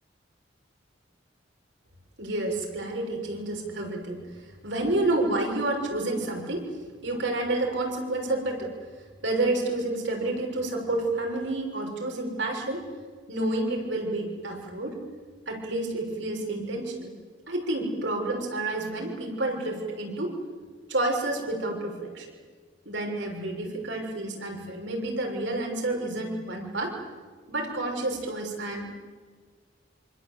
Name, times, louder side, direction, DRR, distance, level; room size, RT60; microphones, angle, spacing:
voice 1, 2.2-6.7 7.0-8.7 9.2-12.9 13.3-15.0 15.5-17.1 17.5-20.3 20.9-22.3 22.8-26.9 27.5-28.9, right 2 dB, 75° right, 1 dB, 6.4 m, -29 dB
27.0 x 26.5 x 8.4 m, 1.5 s
head